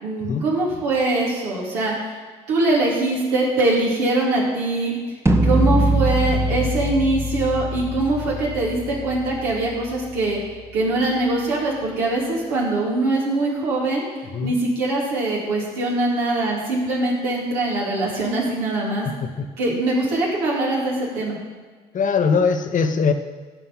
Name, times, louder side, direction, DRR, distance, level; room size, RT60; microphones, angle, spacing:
voice 1, 0.0-1.9 2.5-5.0 5.4-10.4 10.7-14.0 14.4-19.1 19.6-21.4, right 2 dB, 75° right, -4 dB, 3.3 m, -22 dB
sound 1, 5.3-11.2, right 1 dB, 15° right, 1.3 m, -24 dB
voice 2, 21.9-23.1, left 5 dB, 40° left, 7 dB, 1.1 m, -21 dB
15.5 x 5.7 x 5.6 m, 1.4 s
hypercardioid pair, 55°, 20 cm